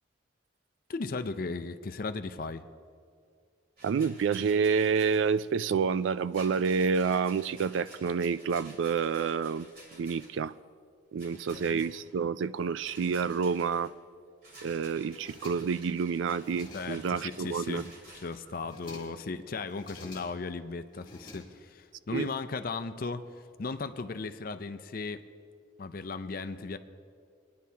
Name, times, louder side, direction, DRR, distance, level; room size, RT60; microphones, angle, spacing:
voice 1, 0.9-2.6 11.3-11.8 16.7-17.9 18.1-23.2 23.6-25.3 25.8-26.8, left 4 dB, 45° left, 0.5 m, -36 dB
Rattle, 3.8-5.3 6.3-10.4 11.2-12.0 12.8-13.9 14.4-18.4, right 1 dB, 50° right, 2.9 m, -53 dB
voice 2, 3.8-9.7 9.9-10.5 11.1-13.9 14.6-17.9 22.1-22.3, right 6 dB, 75° right, 0.3 m, -28 dB
sound 1, 15.0-15.9 16.3-17.2 17.5-18.2 18.5-19.3 19.7-20.6 20.9-21.9, left 2 dB, 25° left, 1.9 m, -50 dB
21.5 x 10.5 x 2.8 m
head